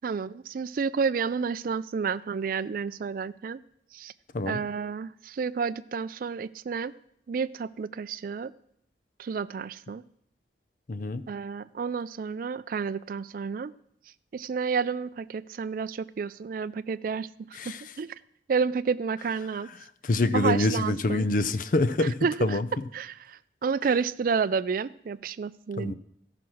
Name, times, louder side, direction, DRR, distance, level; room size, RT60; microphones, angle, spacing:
voice 1, 0.0-3.6 3.9-4.1 4.5-6.9 7.3-8.5 9.2-10.0 11.3-13.7 14.3-17.3 17.7-18.1 18.5-19.7 20.3-21.3 22.0-22.6 22.9-25.9, right 5 dB, 50° right, 17 dB, 0.3 m, -30 dB
voice 2, 10.9-11.2 17.6-17.8 20.0-22.7 25.8-25.9, left 2 dB, 50° left, 13 dB, 0.5 m, -26 dB
15.0 x 5.8 x 6.2 m, 0.73 s
head